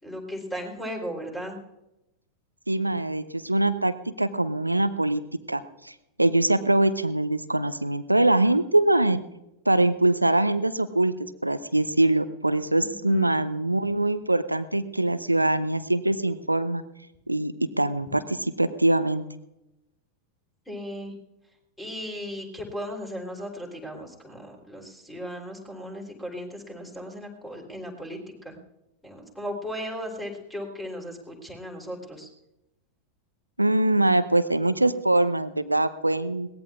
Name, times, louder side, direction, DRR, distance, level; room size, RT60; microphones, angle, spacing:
voice 1, 0.0-1.6 12.8-13.3 20.6-21.1 21.8-28.6 29.0-32.3, equal, 5° left, 0 dB, 3.5 m, -36 dB
voice 2, 2.7-5.2 5.5-9.2 9.7-11.1 11.4-16.8 17.3-19.2 33.6-36.5, right 2 dB, 85° right, 14 dB, 0.6 m, -23 dB
22.0 x 18.0 x 2.4 m, 0.91 s
figure-of-eight pair, 90°, 0 cm